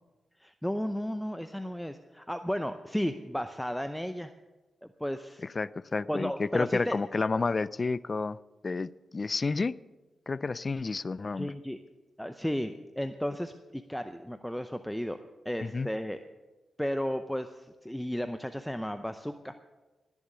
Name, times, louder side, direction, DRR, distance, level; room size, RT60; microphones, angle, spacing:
voice 1, 0.4-4.3 4.8-5.4 6.1-7.0 11.4-11.8 12.2-15.2 15.4-16.2 16.8-19.6, equal, 5° left, 0.6 m, -34 dB
voice 2, 5.6-8.4 8.6-9.8 10.3-11.5 15.6-15.9, left 4 dB, 40° left, 0.4 m, -30 dB
19.0 x 7.2 x 6.6 m
cardioid pair, 60°, 0 cm